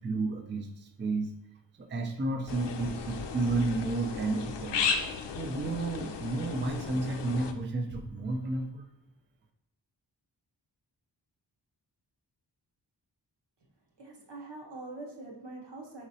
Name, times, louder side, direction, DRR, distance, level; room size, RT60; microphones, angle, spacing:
voice 1, 0.0-1.3 1.8-4.9 5.3-8.9, right 2 dB, 25° right, 4 dB, 0.4 m, -32 dB
sound 1, 2.5-7.5, left 6 dB, 75° left, 0.5 m, -35 dB
voice 2, 14.0-16.1, right 2 dB, 75° right, -1 dB, 1.0 m, -44 dB
5.0 x 3.0 x 2.7 m, 0.78 s
wide cardioid pair, 85°, 43 cm